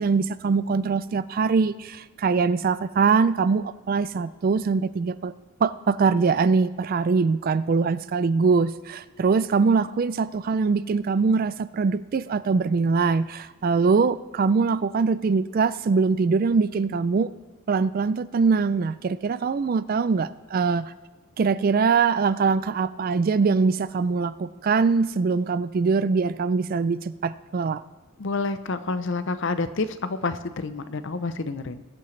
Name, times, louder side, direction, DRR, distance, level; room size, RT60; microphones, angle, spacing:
voice 1, 0.0-5.3 5.6-17.3 17.7-20.9 21.4-27.8, right 4 dB, 40° right, 16 dB, 0.3 m, -23 dB
voice 2, 28.2-31.8, left 3 dB, 55° left, 12 dB, 0.6 m, -28 dB
21.0 x 8.8 x 3.2 m, 1.2 s
head